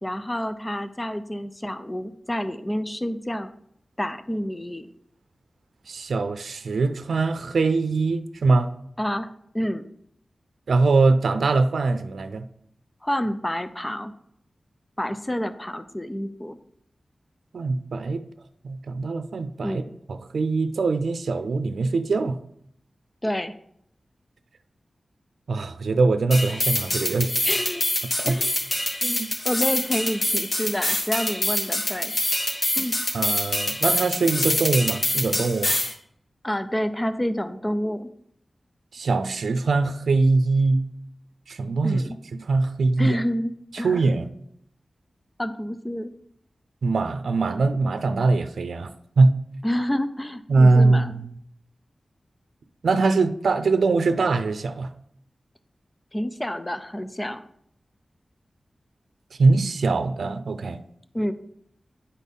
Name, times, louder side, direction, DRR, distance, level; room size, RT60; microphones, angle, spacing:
voice 1, 0.0-3.5 4.0-4.9 9.0-9.3 9.5-9.8 13.0-14.1 15.0-16.6 19.6-19.9 23.2-23.5 27.4-27.8 28.3-28.6 29.4-32.1 32.8-32.9 36.4-38.1 41.8-42.2 43.0-44.0 45.4-46.1 49.6-51.1 56.1-57.4 61.1-61.3, equal, 15° left, 11 dB, 0.5 m, -28 dB
voice 2, 5.9-8.7 10.7-12.4 17.5-18.2 18.6-19.8 20.1-22.4 25.5-27.3 28.2-28.4 29.0-29.3 33.1-35.7 38.9-40.8 41.5-42.0 42.5-43.2 43.7-44.3 46.8-48.9 49.2-49.3 50.5-51.3 52.8-54.9 59.4-60.8, right 3 dB, 85° right, 10 dB, 0.5 m, -22 dB
sound 1, 26.3-35.9, left 1 dB, 40° left, 1.6 m, -25 dB
10.0 x 4.2 x 5.4 m, 0.70 s
wide cardioid pair, 85°, 0 cm